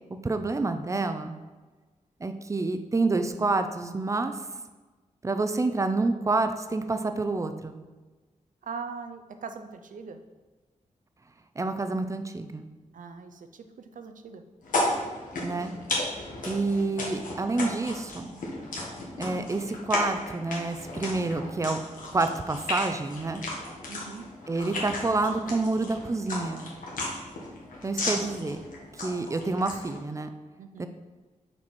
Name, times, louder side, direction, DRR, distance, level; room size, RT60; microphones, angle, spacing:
voice 1, 0.2-1.3 2.2-4.3 5.2-7.8 11.6-12.7 15.4-15.7 16.5-18.3 19.2-21.8 22.1-23.4 24.5-26.7 27.8-28.6 29.0-30.3 30.8-30.9, right 3 dB, 25° right, 8 dB, 0.5 m, -28 dB
voice 2, 8.6-10.2 12.9-14.4 23.9-24.3 30.6-30.9, right 5 dB, 80° right, 7 dB, 0.6 m, -41 dB
sound 1, 14.6-30.0, left 2 dB, 90° left, 1.5 m, -34 dB
6.0 x 4.7 x 4.3 m, 1.3 s
wide cardioid pair, 120°, 13 cm